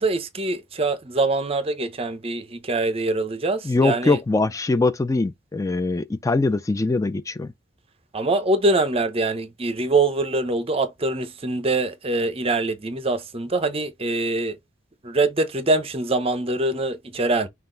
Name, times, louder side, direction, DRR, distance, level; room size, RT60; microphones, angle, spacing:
voice 1, 0.0-4.2 8.1-14.6 15.0-17.5, right 2 dB, 30° right, 0.7 m, -24 dB
voice 2, 3.6-7.5, left 3 dB, 15° left, 0.3 m, -22 dB
5.7 x 2.5 x 3.8 m
head